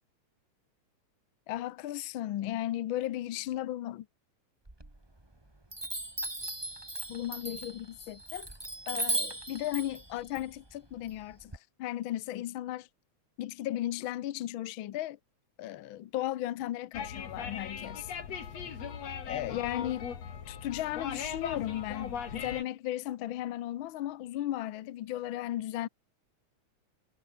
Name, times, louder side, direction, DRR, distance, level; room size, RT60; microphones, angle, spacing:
voice 1, 1.5-4.1 7.1-8.5 8.9-11.5 11.8-12.9 13.4-15.2 15.6-18.1 19.3-20.1 20.5-25.9, left 13 dB, 80° left, 1.1 m, -35 dB
Chime, 4.7-5.3 5.7-11.6, right 2 dB, 10° right, 1.8 m, -37 dB
sound 1, 16.9-22.6, left 7 dB, 60° left, 3.6 m, -39 dB
omnidirectional pair, 3.4 m